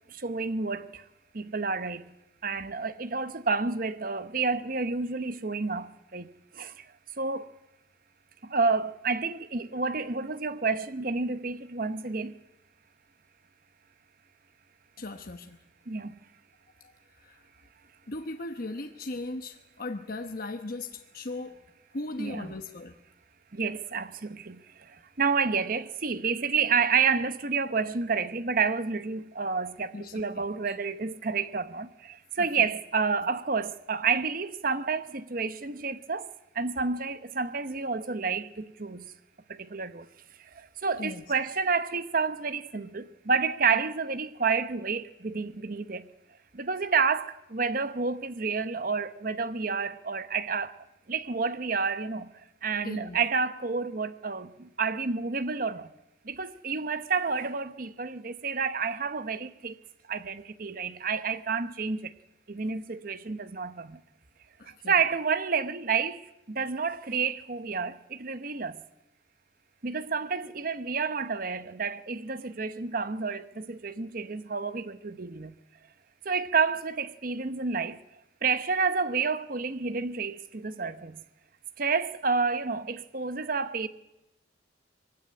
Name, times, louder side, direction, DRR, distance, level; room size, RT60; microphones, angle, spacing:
voice 1, 0.1-1.1 1.3-2.0 2.4-6.9 7.2-7.5 8.4-12.4 15.9-16.1 22.2-22.5 23.5-39.1 39.5-40.1 40.4-46.1 46.5-50.8 51.1-55.9 56.2-59.8 60.1-62.1 62.5-64.0 64.7-68.8 69.8-75.6 76.2-78.0 78.4-81.2 81.8-83.9, right 5 dB, 50° right, 0.9 m, -30 dB
voice 2, 15.0-15.6 16.8-16.9 17.2-17.4 18.1-21.6 21.9-22.9 29.9-30.7 32.4-32.5 41.0-41.2 52.8-53.2 64.6-64.9, left 2 dB, 50° left, 1.1 m, -38 dB
22.0 x 16.5 x 9.8 m
head